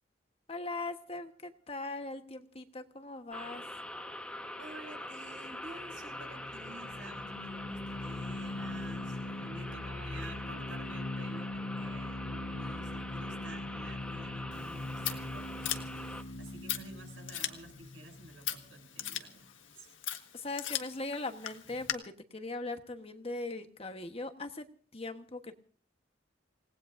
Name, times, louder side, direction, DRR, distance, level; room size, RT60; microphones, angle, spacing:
voice 1, 0.5-3.6 20.3-24.7 24.9-25.5, left 2 dB, 30° left, 7 dB, 1.2 m, -40 dB
sound 1, 3.3-16.2, left 1 dB, 5° left, 1.1 m, -44 dB
voice 2, 4.6-19.9, right 2 dB, 90° right, 3 dB, 6.8 m, -51 dB
sound 2, 5.6-18.9, left 2 dB, 70° left, 1.0 m, -41 dB
Scissors, 14.5-21.9, left 11 dB, 85° left, 1.5 m, -40 dB
27.5 x 18.5 x 2.6 m, 0.43 s
head